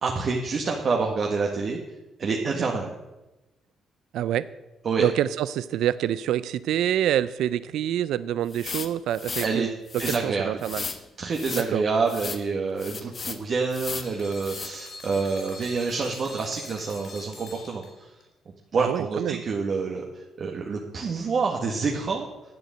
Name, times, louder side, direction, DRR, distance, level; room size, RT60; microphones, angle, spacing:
voice 1, 0.0-1.8 2.2-2.9 4.8-5.0 9.4-9.7 10.0-10.5 11.2-17.8 18.7-22.3, right 4 dB, 50° right, 0 dB, 1.6 m, -27 dB
voice 2, 4.1-4.5 5.0-10.8 11.5-11.8 18.8-19.4, right 11 dB, 80° right, 16 dB, 0.4 m, -27 dB
sound 1, 8.5-9.5 9.9-10.2 10.6-11.0 11.3-11.7 12.1-12.4 12.8-13.4 13.7-14.1 14.4-14.7, left 5 dB, 40° left, 1.3 m, -34 dB
sound 2, 13.9-18.2, left 2 dB, 60° left, 4.6 m, -44 dB
11.0 x 8.1 x 7.8 m, 1.0 s
cardioid pair, 90°, 0 cm